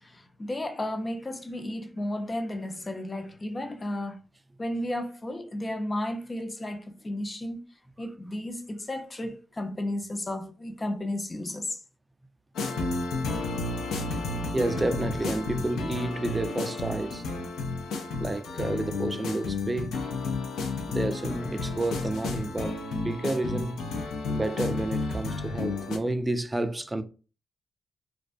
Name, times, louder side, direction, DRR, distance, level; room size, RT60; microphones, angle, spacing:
voice 1, 0.0-4.2 4.6-7.6 8.0-11.8, left 1 dB, 30° left, 0.5 m, -33 dB
sound 1, 12.5-26.0, left 3 dB, 85° left, 0.4 m, -32 dB
voice 2, 14.5-17.3 18.2-20.0 20.9-22.8 23.0-23.8 24.3-27.0, right 2 dB, 25° right, 0.3 m, -30 dB
2.3 x 2.2 x 2.5 m
supercardioid pair, 50°, 0 cm